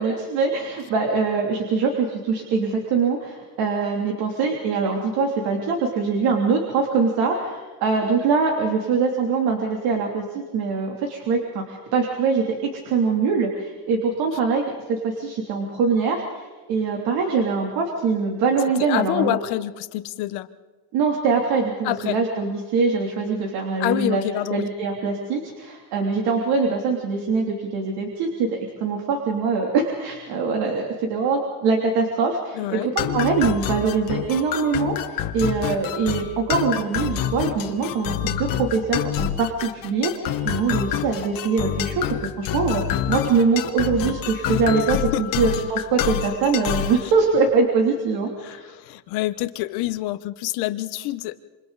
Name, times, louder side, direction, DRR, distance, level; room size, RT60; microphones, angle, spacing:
voice 1, 0.0-14.6 14.9-19.4 20.9-24.2 24.5-48.7, right 4 dB, 70° right, 0 dB, 3.3 m, -23 dB
voice 2, 18.8-20.5 21.8-22.1 23.8-24.6 32.5-32.9 44.9-45.2 48.4-51.4, left 15 dB, 80° left, 11 dB, 1.2 m, -27 dB
sound 1, 33.0-47.0, left 11 dB, 60° left, 1.6 m, -27 dB
27.5 x 27.0 x 4.2 m, 1.3 s
cardioid pair, 165°, 38 cm